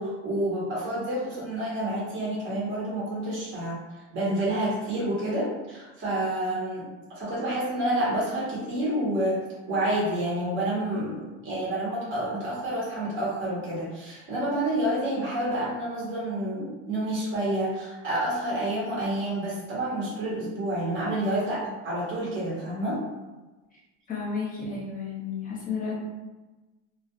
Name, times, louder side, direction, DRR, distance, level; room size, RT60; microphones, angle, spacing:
voice 1, 0.0-3.8 4.1-6.9 7.1-23.0, right 1 dB, 35° right, -6 dB, 0.8 m, -29 dB
voice 2, 24.1-25.9, left 5 dB, 25° left, -4 dB, 0.7 m, -32 dB
2.2 x 2.1 x 2.8 m, 1.1 s
cardioid pair, 140°, 34 cm